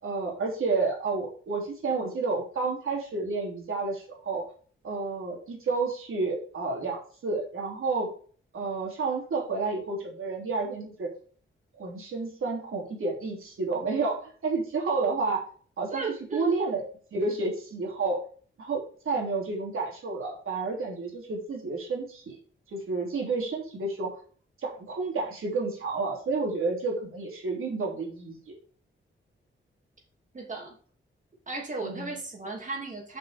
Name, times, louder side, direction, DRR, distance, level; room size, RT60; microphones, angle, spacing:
voice 1, 0.0-4.4 4.8-8.1 8.5-11.1 11.8-15.4 15.8-16.0 16.3-16.9 17.1-18.2 18.6-22.4 22.7-24.1 24.6-28.6 31.8-32.1, right 3 dB, 90° right, 0 dB, 3.2 m, -30 dB
voice 2, 15.9-16.5 30.3-30.8 31.5-33.2, right 3 dB, 40° right, 1 dB, 2.7 m, -35 dB
7.4 x 5.6 x 5.1 m, 0.43 s
wide cardioid pair, 135°, 21 cm